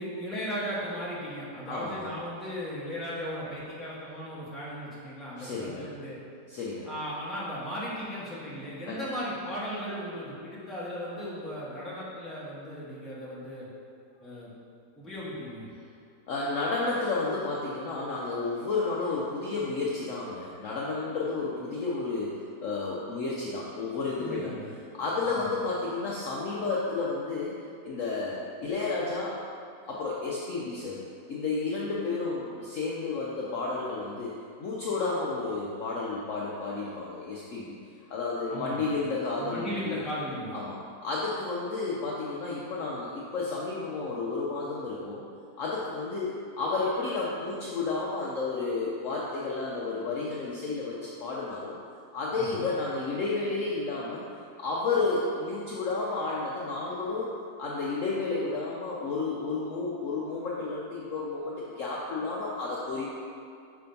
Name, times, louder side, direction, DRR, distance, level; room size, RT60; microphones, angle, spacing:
voice 1, 0.0-6.2 6.8-13.7 14.2-14.5 15.0-15.7 24.2-24.7 25.3-25.5 38.5-40.6 52.3-52.7, equal, ahead, -8 dB, 0.9 m, -37 dB
voice 2, 1.7-2.1 5.4-5.9 6.5-6.9 8.9-9.0 16.3-24.5 24.9-27.5 27.8-29.4 29.9-31.0 31.3-34.3 34.6-37.8 38.1-40.0 40.5-45.2 45.6-51.8 52.1-54.2 54.6-57.3 57.6-63.1, left 3 dB, 65° left, -5 dB, 0.8 m, -31 dB
5.4 x 3.4 x 5.2 m, 2.4 s
omnidirectional pair, 1.8 m